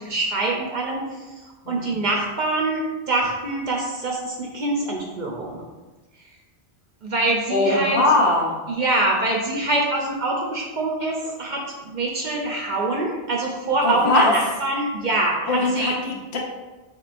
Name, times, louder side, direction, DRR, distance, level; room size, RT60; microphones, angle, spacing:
voice 1, 0.0-5.6 7.0-8.0 8.7-15.9, right 2 dB, 55° right, -1 dB, 0.6 m, -25 dB
voice 2, 7.5-8.5 13.8-14.3 15.5-16.4, left 2 dB, 75° left, 0 dB, 1.0 m, -20 dB
4.4 x 3.0 x 2.5 m, 1.2 s
omnidirectional pair, 1.1 m